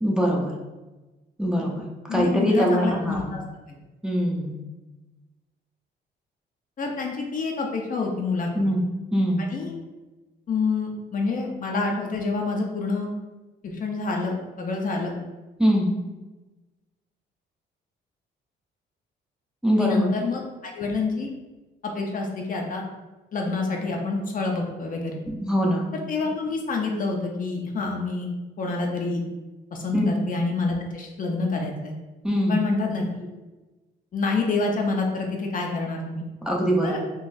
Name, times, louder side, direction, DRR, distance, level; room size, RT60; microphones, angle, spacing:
voice 1, 0.0-0.5 1.4-3.3 4.0-4.6 8.6-9.5 15.6-15.9 19.6-20.1 25.3-25.9 29.9-30.2 32.2-32.7 36.5-37.0, equal, 5° right, -2 dB, 0.6 m, -23 dB
voice 2, 2.1-3.4 3.7-3.8 6.8-8.7 9.5-9.7 10.5-13.1 13.6-15.1 19.8-21.3 21.8-22.8 23.3-25.2 25.9-28.3 28.6-29.2 29.7-31.9 32.5-33.3 34.1-36.2 36.8-37.0, left 3 dB, 45° left, 1 dB, 0.6 m, -27 dB
3.8 x 2.4 x 2.6 m, 1.1 s
cardioid pair, 90°, 20 cm